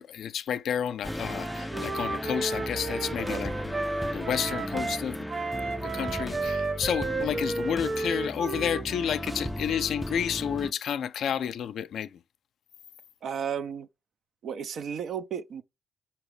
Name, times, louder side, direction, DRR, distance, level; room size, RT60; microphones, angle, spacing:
voice 1, 0.0-3.7 4.1-5.2 5.8-12.2, left 8 dB, 75° left, 0.4 m, -31 dB
sound 1, 1.0-10.7, equal, 5° left, 0.4 m, -36 dB
Wind instrument woodwind instrument, 1.2-5.0 5.3-9.4, right 3 dB, 40° right, 1.0 m, -33 dB
voice 2, 13.2-13.9 14.4-15.6, right 7 dB, 70° right, 0.5 m, -33 dB
5.0 x 2.8 x 3.2 m
cardioid pair, 85°, 0 cm